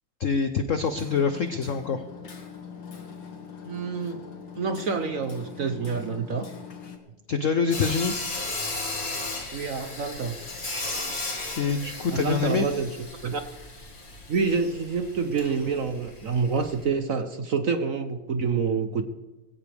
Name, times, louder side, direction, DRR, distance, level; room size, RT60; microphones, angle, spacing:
voice 1, 0.2-2.0 7.3-8.1 11.5-12.7, left 5 dB, 80° left, 8 dB, 0.6 m, -25 dB
Hammer, 0.8-7.0, left 6 dB, 60° left, 2.5 m, -42 dB
voice 2, 3.7-4.2 4.6-6.5 9.5-10.4 12.1-13.4 14.3-19.0, right 5 dB, 60° right, 8 dB, 0.8 m, -27 dB
Sawing, 7.7-16.8, left 2 dB, 30° left, 2.4 m, -35 dB
19.5 x 16.5 x 3.5 m, 1.1 s
omnidirectional pair, 2.4 m